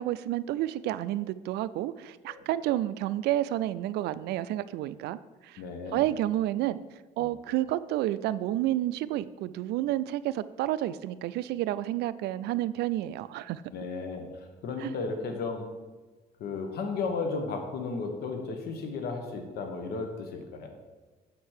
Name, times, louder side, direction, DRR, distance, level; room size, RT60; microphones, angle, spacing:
voice 1, 0.0-5.6 5.9-6.8 7.2-13.6 14.8-14.9, right 14 dB, 80° right, 16 dB, 0.4 m, -30 dB
voice 2, 5.6-6.0 7.2-7.3 13.7-15.7 16.4-20.7, left 4 dB, 70° left, 4 dB, 1.4 m, -34 dB
7.4 x 4.6 x 6.5 m, 1.3 s
cardioid pair, 110°, 17 cm